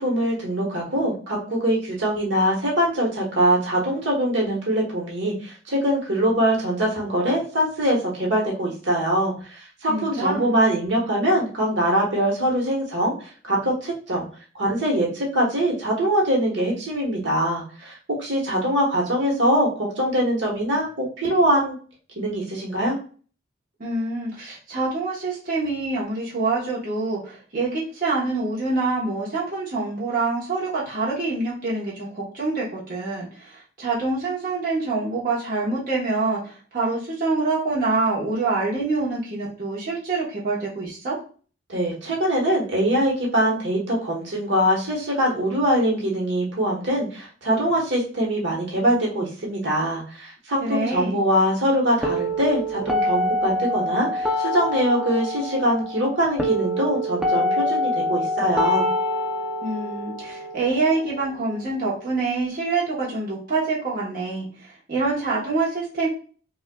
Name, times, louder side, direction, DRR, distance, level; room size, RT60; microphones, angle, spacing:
voice 1, 0.0-14.2 14.5-21.7 22.2-23.0 41.7-58.9, equal, 70° right, -2 dB, 1.3 m, -23 dB
voice 2, 9.9-10.6 23.8-41.2 50.6-51.2 59.6-66.1, right 3 dB, 45° right, -6 dB, 1.1 m, -26 dB
sound 1, 52.0-62.0, left 1 dB, 5° right, 0.5 m, -26 dB
5.3 x 2.4 x 2.3 m, 0.40 s
head